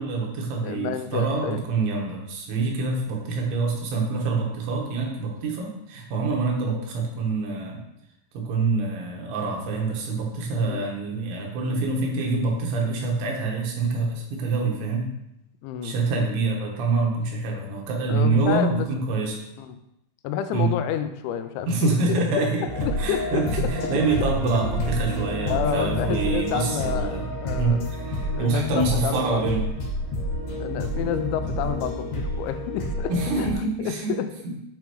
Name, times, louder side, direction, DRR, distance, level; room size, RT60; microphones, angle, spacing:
voice 1, 0.0-7.8 8.3-15.1 15.8-19.4 20.5-20.7 21.7-27.3 27.6-29.7 31.0-31.1 33.1-34.1 34.4-34.5, right 3 dB, 85° right, 0 dB, 3.7 m, -26 dB
voice 2, 0.6-1.7 10.6-10.9 15.6-16.0 18.1-18.9 19.6-19.8 20.2-22.5 22.8-23.7 25.5-27.8 28.3-29.5 30.6-33.5 33.8-34.3, left 9 dB, 85° left, 9 dB, 2.9 m, -29 dB
sound 1, 22.7-33.5, left 1 dB, 60° left, 3.3 m, -29 dB
8.7 x 5.2 x 3.1 m, 0.81 s
omnidirectional pair, 5.2 m